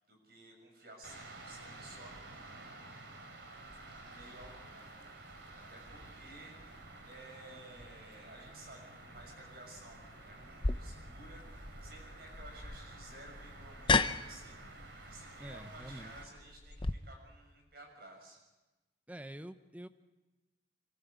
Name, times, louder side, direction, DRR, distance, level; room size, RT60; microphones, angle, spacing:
voice 1, 0.0-3.2 4.0-18.4, right 1 dB, 55° right, 2 dB, 6.5 m, -55 dB
sound 1, 1.0-16.2, right 2 dB, 80° right, 3.1 m, -51 dB
sound 2, 10.6-16.9, left 3 dB, 25° left, 0.6 m, -35 dB
voice 2, 15.4-16.1 19.1-19.9, right 1 dB, 10° right, 11 dB, 0.8 m, -47 dB
26.0 x 14.0 x 8.3 m, 1.1 s
head